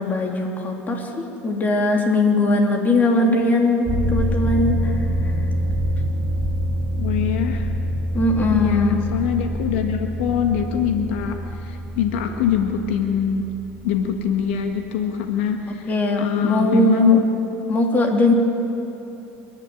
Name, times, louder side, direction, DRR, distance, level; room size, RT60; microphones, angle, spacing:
voice 1, 0.0-4.9 8.1-9.0 15.9-17.2 17.7-18.3, left 2 dB, 30° left, 1 dB, 3.3 m, -20 dB
sound 1, 3.8-14.7, equal, 15° right, 4.6 m, -25 dB
voice 2, 7.0-7.7 8.5-13.5 13.8-15.9 16.2-17.2, left 8 dB, 85° left, 4 dB, 1.5 m, -23 dB
26.0 x 10.5 x 9.9 m, 2.9 s
supercardioid pair, 105°, 6 cm